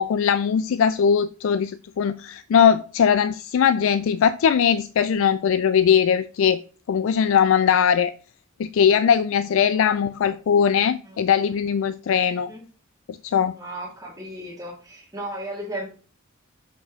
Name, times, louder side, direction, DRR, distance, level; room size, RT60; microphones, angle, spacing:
voice 1, 0.0-6.6 6.9-8.1 8.6-12.5 13.1-13.6, left 7 dB, 70° left, 0.3 m, -20 dB
voice 2, 9.6-9.9 11.1-11.2 12.5-12.6 13.5-15.9, right 1 dB, 15° right, 1.8 m, -35 dB
6.9 x 5.1 x 3.6 m
head